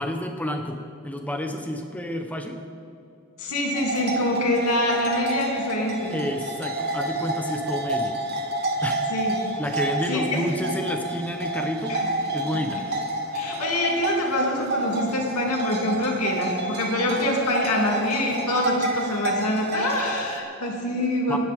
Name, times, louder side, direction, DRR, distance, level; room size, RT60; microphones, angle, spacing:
voice 1, 0.0-2.6 6.1-8.2 8.8-9.1 9.6-12.0 12.3-12.9 21.3-21.4, equal, 5° left, 4 dB, 1.0 m, -30 dB
voice 2, 3.4-6.2 9.1-9.4 10.1-10.5 11.9-12.1 13.3-21.4, left 1 dB, 90° left, -1 dB, 2.8 m, -25 dB
sound 1, 3.7-20.4, right 1 dB, 45° right, 1.5 m, -29 dB
23.5 x 10.5 x 3.6 m, 2.6 s
head